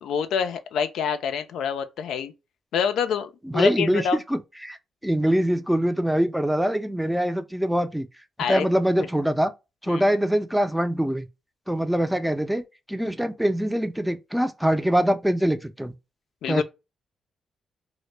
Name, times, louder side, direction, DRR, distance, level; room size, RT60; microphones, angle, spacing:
voice 1, 0.0-2.3 2.7-4.2 8.4-8.7 9.0-9.1 9.9-10.0 16.4-16.6, left 7 dB, 80° left, 0.3 m, -26 dB
voice 2, 3.5-4.8 5.0-8.1 8.5-9.5 9.8-11.3 11.7-12.6 12.9-15.9 16.5-16.6, equal, 5° right, 0.4 m, -23 dB
2.0 x 2.0 x 3.1 m
cardioid pair, 70°, 0 cm